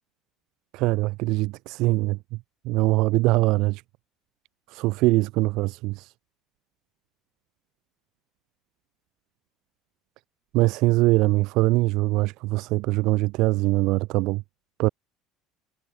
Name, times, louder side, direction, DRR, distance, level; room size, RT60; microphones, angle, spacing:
voice 1, 0.7-2.4 2.6-3.8 4.7-6.1 10.5-14.4 14.8-14.9, right 21 dB, 60° right, 2.7 m, -22 dB
cardioid pair, 160°, 0 cm